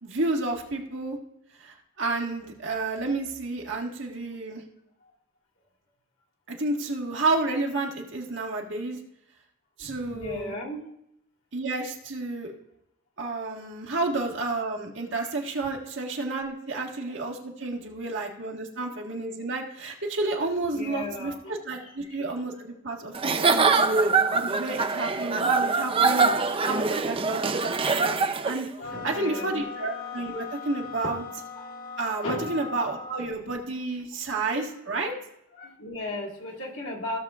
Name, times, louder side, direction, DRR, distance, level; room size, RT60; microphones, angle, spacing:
voice 1, 0.0-1.2 1.6-4.6 6.5-9.0 9.8-10.5 11.5-12.5 13.2-28.2 28.4-31.2 32.0-35.1, right 2 dB, 65° right, 1.6 m, -31 dB
voice 2, 9.8-10.8 20.7-21.6 28.8-29.7 31.6-31.7 32.2-32.6 35.6-37.2, left 1 dB, 90° left, 1.9 m, -35 dB
Giggle / Chuckle chortle, 23.1-28.7, right 4 dB, 30° right, 0.5 m, -23 dB
sound 1, 28.8-33.4, left 4 dB, 50° left, 1.3 m, -39 dB
16.0 x 6.7 x 2.4 m
head